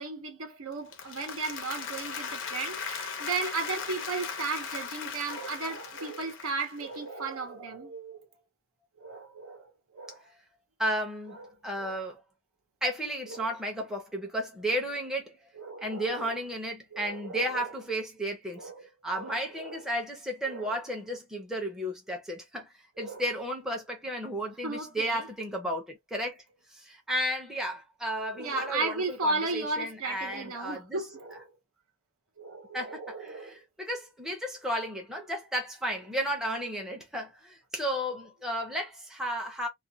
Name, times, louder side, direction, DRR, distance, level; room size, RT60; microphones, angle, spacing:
voice 1, 0.0-8.3 9.0-10.2 11.8-12.0 13.3-13.5 15.5-16.3 16.9-17.7 18.5-19.8 20.4-20.8 23.0-23.3 24.6-25.3 28.3-31.5 32.4-33.6, right 3 dB, 70° right, 0.8 m, -35 dB
Applause, 0.7-7.0, left 6 dB, 55° left, 0.6 m, -38 dB
voice 2, 10.8-12.2 12.8-15.4 15.8-18.7 19.0-22.7 23.0-26.4 26.7-31.0 32.7-39.7, equal, ahead, 0.6 m, -33 dB
2.4 x 2.2 x 2.7 m
head